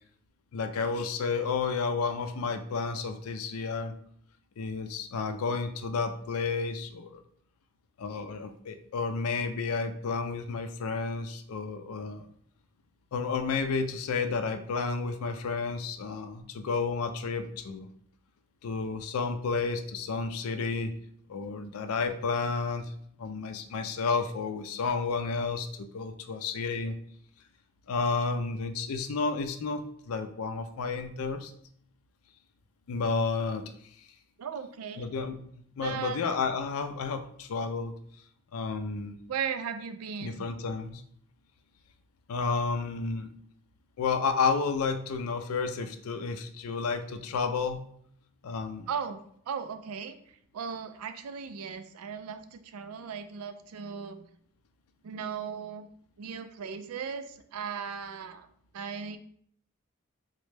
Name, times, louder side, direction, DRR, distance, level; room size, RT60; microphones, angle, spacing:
voice 1, 0.5-3.9 4.6-7.2 8.0-12.3 13.1-17.9 18.6-20.9 21.3-22.9 23.2-27.0 27.9-31.5 32.9-33.6 35.0-35.4 35.8-37.9 38.5-39.2 40.2-41.0 42.3-43.3 44.0-47.8 48.4-48.9, left 4 dB, 80° left, 9 dB, 0.4 m, -31 dB
voice 2, 34.4-35.1 35.8-36.2 39.3-40.5 48.9-50.2 50.5-54.3 55.0-55.9 56.2-58.5 58.7-59.2, right 6 dB, 90° right, 9 dB, 0.4 m, -37 dB
3.9 x 2.1 x 3.2 m, 0.64 s
head